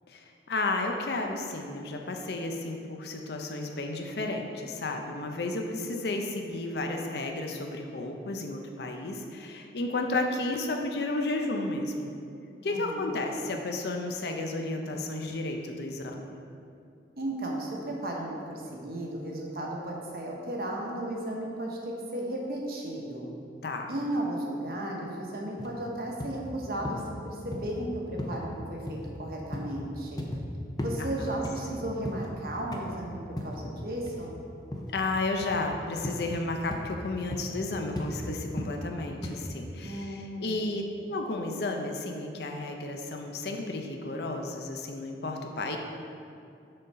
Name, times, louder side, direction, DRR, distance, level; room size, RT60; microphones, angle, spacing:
voice 1, 0.1-12.2 12.6-16.4 23.6-23.9 31.0-31.4 31.7-31.8 34.9-45.8, left 2 dB, 70° left, 3 dB, 0.6 m, -32 dB
voice 2, 12.6-13.2 17.2-23.3 23.9-30.3 30.8-33.2 33.4-34.4 39.8-40.7, right 1 dB, 55° right, -1 dB, 1.0 m, -35 dB
sound 1, 25.6-25.7 26.2-26.4 26.8-27.1 27.5-27.7 28.2-28.4 28.9-29.1 29.5-29.8 30.2-30.5 30.8-31.0 31.4-32.3 32.7-33.0 33.4-33.6 34.1-34.3 34.7-35.0 35.4-35.6 36.0-36.3 36.7-36.9 37.3-37.6 38.0-38.1 38.6-38.8 39.2-39.4, left 1 dB, 20° left, 0.5 m, -36 dB
6.4 x 3.9 x 5.4 m, 2.5 s
head